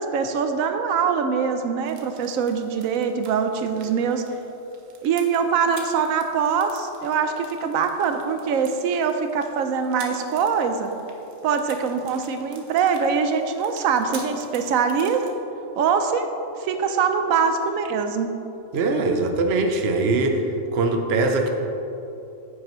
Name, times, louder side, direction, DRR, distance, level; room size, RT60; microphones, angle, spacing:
voice 1, 0.0-4.2 5.0-10.9 11.4-15.2 15.8-16.3 16.6-18.3, right 6 dB, 90° right, 7 dB, 1.0 m, -23 dB
sound 1, 1.8-15.3, right 4 dB, 70° right, 1.3 m, -47 dB
voice 2, 18.7-20.4 20.7-21.5, right 3 dB, 55° right, 4 dB, 0.9 m, -21 dB
9.7 x 8.3 x 3.1 m, 3.0 s
omnidirectional pair, 1.4 m